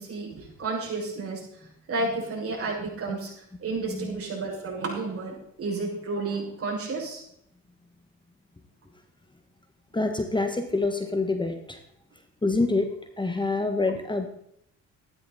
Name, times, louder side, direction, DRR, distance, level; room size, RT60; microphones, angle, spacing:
voice 1, 0.0-1.4 1.9-3.3 3.6-7.2, right 3 dB, 50° right, -2 dB, 6.4 m, -31 dB
voice 2, 9.9-11.8 12.4-12.9 13.2-14.3, left 3 dB, 15° left, 6 dB, 1.5 m, -26 dB
14.0 x 11.5 x 4.3 m, 0.71 s
cardioid pair, 90°, 30 cm